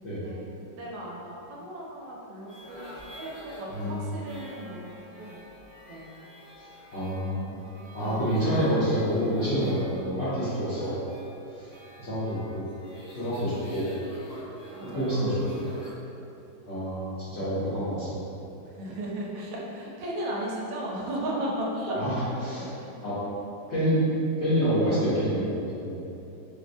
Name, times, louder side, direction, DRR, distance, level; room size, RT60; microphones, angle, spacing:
voice 1, 0.8-4.9 5.2-5.4 5.9-6.1 8.0-8.3 14.8-15.3 18.6-22.2 22.8-22.9, right 1 dB, 80° right, -3 dB, 1.3 m, -35 dB
sound 1, 2.5-15.9, left 1 dB, 80° left, 1.6 m, -46 dB
voice 2, 3.7-4.1 6.6-6.7 6.9-7.6 7.9-10.9 11.6-11.7 12.0-12.6 13.2-13.8 14.9-15.4 16.7-18.1 21.9-22.7 23.0-23.2 23.7-24.0 24.4-25.5 25.8-26.0, equal, 55° left, -12 dB, 0.7 m, -27 dB
4.7 x 2.0 x 2.5 m, 2.8 s
omnidirectional pair, 2.0 m